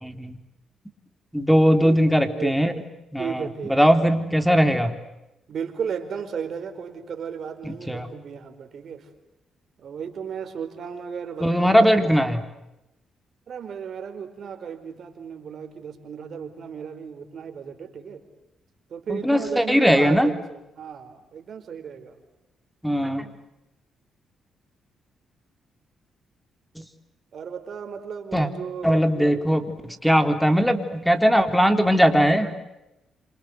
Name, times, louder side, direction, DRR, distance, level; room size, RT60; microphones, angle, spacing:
voice 1, 0.0-0.3 1.3-2.7 3.1-3.4 3.7-4.9 7.6-8.1 11.4-12.4 19.1-20.3 22.8-23.3 28.3-28.5 28.8-32.6, equal, ahead, 8 dB, 3.8 m, -19 dB
voice 2, 1.8-2.6 3.2-3.9 5.5-9.1 9.8-12.2 13.5-18.2 18.9-22.2 27.3-29.5, right 6 dB, 60° right, 7 dB, 4.6 m, -35 dB
27.5 x 27.5 x 8.0 m, 0.91 s
cardioid pair, 75°, 0 cm